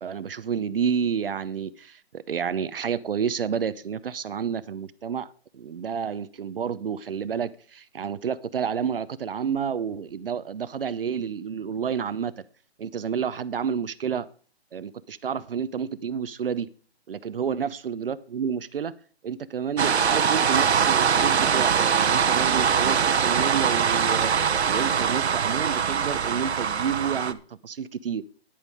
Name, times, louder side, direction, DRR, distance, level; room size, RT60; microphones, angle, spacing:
voice 1, 0.0-12.3 12.8-14.3 14.7-16.7 17.1-18.9 19.2-28.2, right 7 dB, 60° right, 0.8 m, -30 dB
sound 1, 19.8-27.3, right 7 dB, 75° right, 1.2 m, -22 dB
10.5 x 9.0 x 4.7 m
hypercardioid pair, 165°, 33 cm